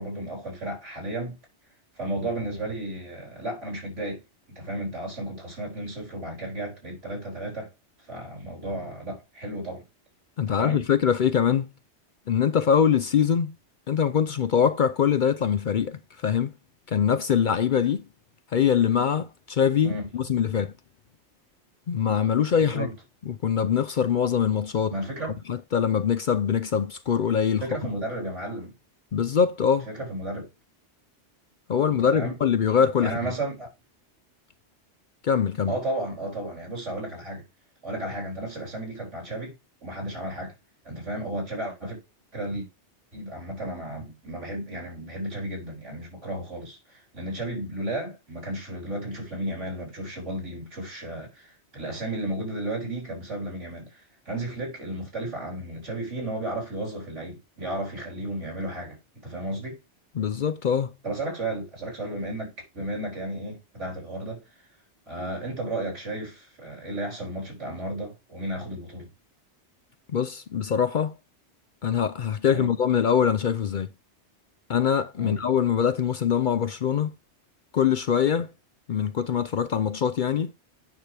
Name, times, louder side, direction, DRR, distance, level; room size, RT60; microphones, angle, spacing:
voice 1, 0.0-1.4 2.0-4.2 4.5-7.7 8.0-9.8 10.5-10.9 19.8-20.1 22.6-22.9 24.9-25.4 27.6-28.7 29.9-30.5 31.9-32.4 33.0-33.7 35.7-37.4 37.8-39.5 39.8-40.5 40.8-42.0 42.3-42.7 43.1-59.8 61.0-64.7 65.1-69.1 72.5-72.7 75.2-75.4, right 1 dB, 90° right, 4.6 m, -33 dB
voice 2, 10.4-11.7 12.3-13.6 13.9-16.5 16.9-18.1 18.5-20.7 21.9-22.9 23.3-25.0 25.5-27.6 29.1-29.9 31.7-33.3 35.2-35.7 60.2-60.9 70.1-71.2 71.8-73.9 74.7-77.1 77.7-78.5 78.9-80.5, left 7 dB, 55° left, 0.6 m, -23 dB
9.0 x 6.0 x 3.4 m
omnidirectional pair, 1.2 m